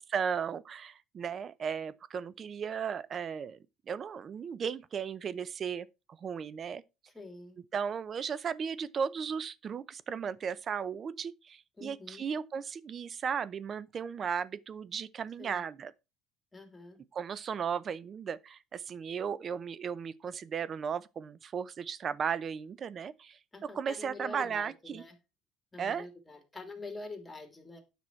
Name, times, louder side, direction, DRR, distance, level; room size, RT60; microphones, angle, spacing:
voice 1, 0.0-3.6 3.9-5.9 6.2-6.8 7.7-15.9 17.1-25.0 25.8-26.1, right 7 dB, 35° right, 0.6 m, -35 dB
voice 2, 7.1-7.6 11.8-12.2 15.4-15.6 16.5-17.0 23.5-25.2 25.7-27.8, left 2 dB, 15° left, 2.8 m, -46 dB
9.7 x 6.1 x 4.4 m
cardioid pair, 115°, 0 cm